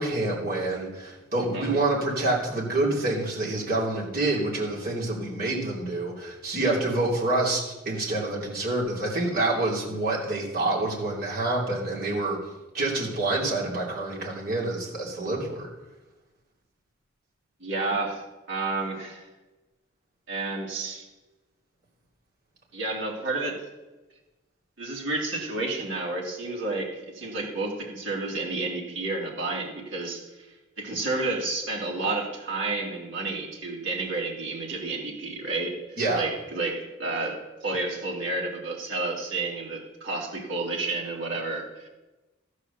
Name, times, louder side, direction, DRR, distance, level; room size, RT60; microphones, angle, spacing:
voice 1, 0.0-12.4 12.7-15.7 36.0-36.2, right 2 dB, 45° right, -4 dB, 3.1 m, -27 dB
voice 2, 17.6-18.2 18.5-19.2 20.3-21.1 22.7-23.6 24.8-30.5 30.8-35.8 36.1-41.9, right 3 dB, 70° right, -2 dB, 2.8 m, -31 dB
14.0 x 4.9 x 6.9 m, 1.1 s
head